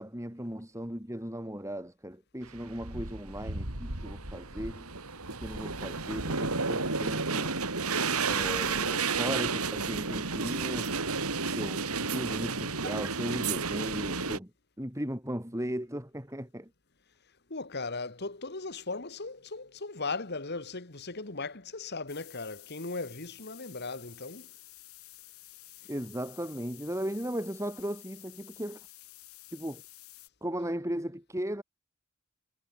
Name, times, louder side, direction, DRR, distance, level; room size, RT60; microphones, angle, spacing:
voice 1, 0.0-4.9 5.4-7.6 8.3-11.0 11.4-14.5 14.8-16.7 25.9-28.9 29.5-29.8 30.4-31.6, equal, 15° right, 4.4 m, -37 dB
sound 1, 2.5-14.4, right 4 dB, 90° right, 4.5 m, -32 dB
voice 2, 17.5-24.5, left 3 dB, 50° left, 2.1 m, -37 dB
sound 2, 22.1-30.3, left 17 dB, 80° left, 6.6 m, -52 dB
head